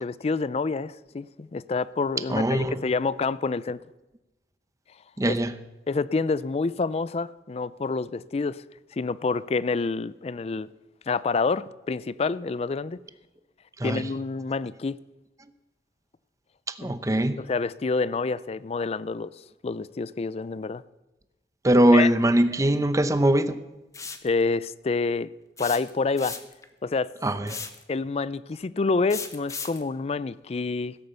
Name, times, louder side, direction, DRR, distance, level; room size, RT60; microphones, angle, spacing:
voice 1, 0.0-3.8 5.3-5.4 5.9-8.6 9.0-10.7 11.1-13.0 13.8-15.0 16.8-16.9 17.4-19.3 19.6-20.8 21.9-22.1 24.2-25.3 25.6-26.4 26.8-27.1 27.9-31.0, left 4 dB, 35° left, 0.4 m, -27 dB
voice 2, 2.3-2.8 5.2-5.5 13.8-14.1 16.7-17.4 21.6-23.6 27.2-27.6, right 1 dB, 20° right, 0.7 m, -21 dB
sound 1, 23.9-24.3 25.6-26.6 27.5-27.8 29.1-29.8, left 5 dB, 20° left, 1.0 m, -36 dB
16.5 x 8.5 x 6.8 m
head